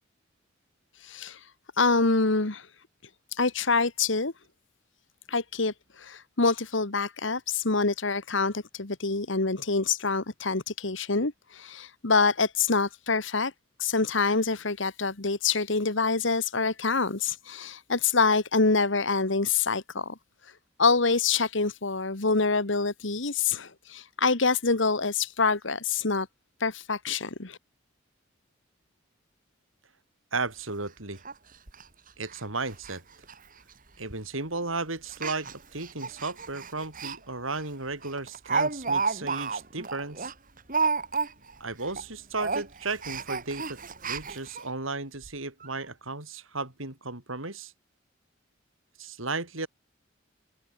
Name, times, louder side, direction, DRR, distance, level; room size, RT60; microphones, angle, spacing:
voice 1, 0.9-1.5 1.8-2.7 3.3-4.3 5.3-13.5 13.8-20.2 20.4-20.5 20.8-26.3 26.6-27.6, left 4 dB, 65° left, 1.7 m, -26 dB
voice 2, 30.3-31.2 32.2-33.0 34.0-40.3 41.6-47.7 49.0-49.7, right 3 dB, 85° right, 6.2 m, -34 dB
Speech, 30.4-30.5 30.8-30.9 31.3-31.4 31.7-31.8 32.3-32.4 32.7-33.0 33.2-33.3 34.1-34.3 35.1-37.2 37.5-37.7 38.0-41.6 41.8-42.1 42.4-44.6 45.2-45.3 45.6-45.7, right 4 dB, 45° right, 3.8 m, -31 dB
head